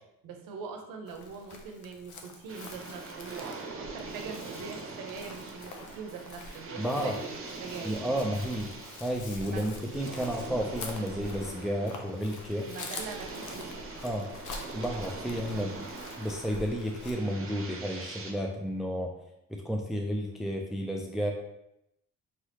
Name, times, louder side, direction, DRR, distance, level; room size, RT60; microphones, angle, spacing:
voice 1, 0.2-8.0 9.4-9.7 12.7-13.7, right 5 dB, 80° right, 3 dB, 0.8 m, -42 dB
Chirp tweet, 1.1-17.1, left 2 dB, 65° left, 0.7 m, -46 dB
sound 1, 2.5-18.3, right 3 dB, 40° right, 0.9 m, -43 dB
voice 2, 6.8-7.2 7.8-8.7 9.0-12.7 14.0-14.3 14.7-15.9 16.2-19.1 19.5-21.3, equal, ahead, 1 dB, 0.5 m, -32 dB
4.7 x 3.1 x 2.9 m, 0.83 s
supercardioid pair, 65°, 33 cm